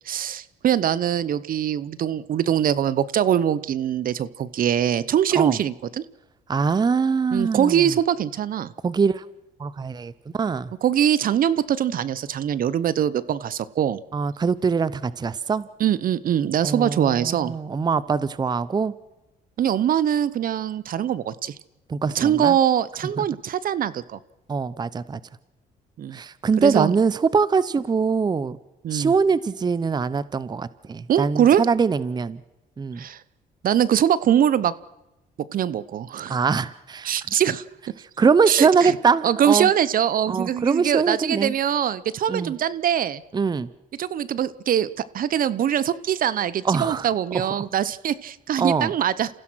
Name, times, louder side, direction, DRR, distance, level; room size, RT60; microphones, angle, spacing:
voice 1, 0.0-6.0 7.3-8.7 10.8-14.0 15.8-17.5 19.6-21.5 22.1-24.2 26.0-26.2 26.6-26.9 28.8-29.1 31.1-31.6 33.0-33.2 33.6-34.7 35.5-36.4 37.0-37.6 38.5-38.9 39.2-43.2 44.0-49.3, right 9 dB, 55° right, 18 dB, 0.9 m, -22 dB
voice 2, 6.5-7.9 8.8-9.3 9.6-10.7 14.1-15.7 16.6-18.9 21.9-22.6 23.2-23.3 24.5-25.2 26.1-28.6 28.9-32.4 32.8-33.0 36.3-37.1 38.2-39.7 40.3-41.5 42.3-42.5 43.3-43.7 46.6-47.1 47.3-47.5 48.6-48.9, right 5 dB, 25° right, 18 dB, 0.7 m, -23 dB
29.0 x 15.5 x 6.2 m, 1.0 s
cardioid pair, 90°, 17 cm